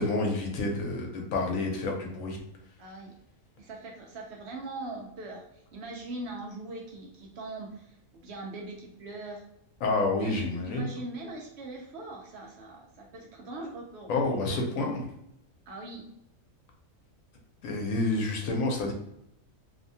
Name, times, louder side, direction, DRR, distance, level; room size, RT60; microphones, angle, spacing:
voice 1, 0.0-2.4 9.8-10.9 14.1-15.0 17.6-18.9, left 2 dB, 85° left, 2 dB, 1.0 m, -29 dB
voice 2, 2.8-3.1 3.6-8.0 8.2-9.5 10.2-14.6 15.7-16.1, right 2 dB, 65° right, 0 dB, 0.8 m, -41 dB
2.7 x 2.2 x 2.6 m, 0.76 s
omnidirectional pair, 1.4 m